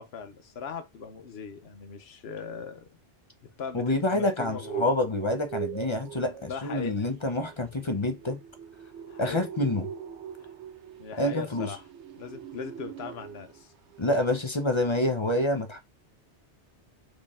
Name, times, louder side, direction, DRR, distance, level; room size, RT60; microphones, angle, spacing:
voice 1, 0.0-2.9 3.6-4.9 6.5-7.1 9.1-9.5 10.4-10.5 11.0-11.8 12.2-13.7, left 6 dB, 60° left, 1.1 m, -39 dB
voice 2, 3.7-8.4 9.2-9.9 11.2-11.7 14.0-15.8, left 1 dB, 30° left, 0.7 m, -27 dB
sound 1, 4.4-13.6 13.9-14.2 14.5-14.6, right 9 dB, 75° right, 0.9 m, -42 dB
4.4 x 3.1 x 3.6 m
omnidirectional pair, 1.2 m